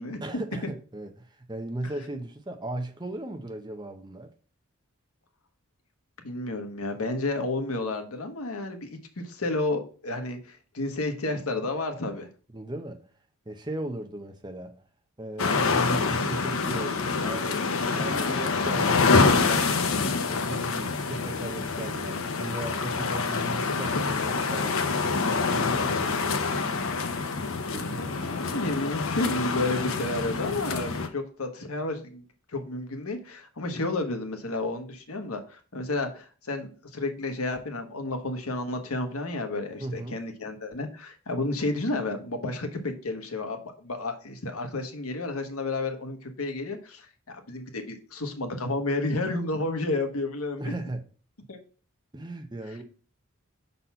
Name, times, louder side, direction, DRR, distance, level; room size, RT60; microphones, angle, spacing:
voice 1, 0.2-4.3 12.5-13.1 13.5-14.8 15.2-19.7 20.2-26.5 27.7-28.1 39.8-40.2 50.6-51.0 52.1-52.8, right 1 dB, 20° right, 0.7 m, -37 dB
voice 2, 6.2-12.3 23.9-24.0 24.3-24.4 27.9-32.2 32.5-50.7 51.5-51.6, left 2 dB, 85° left, 1.3 m, -31 dB
sound 1, 15.4-31.1, left 4 dB, 70° left, 0.8 m, -26 dB
5.9 x 4.1 x 5.6 m
head